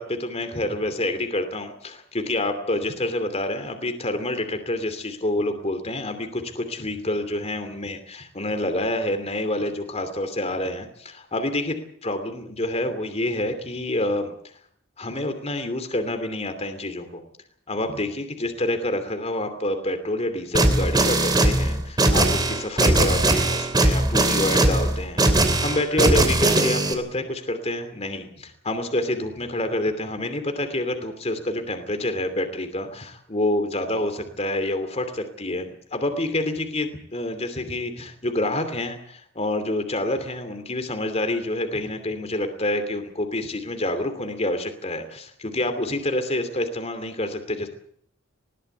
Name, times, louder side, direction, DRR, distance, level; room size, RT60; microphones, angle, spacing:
voice 1, 0.0-14.3 15.0-17.2 17.7-47.7, left 1 dB, 30° left, 8 dB, 2.7 m, -27 dB
sound 1, 20.5-26.9, right 2 dB, 20° right, 3.1 m, -20 dB
20.5 x 18.0 x 8.0 m, 0.65 s
head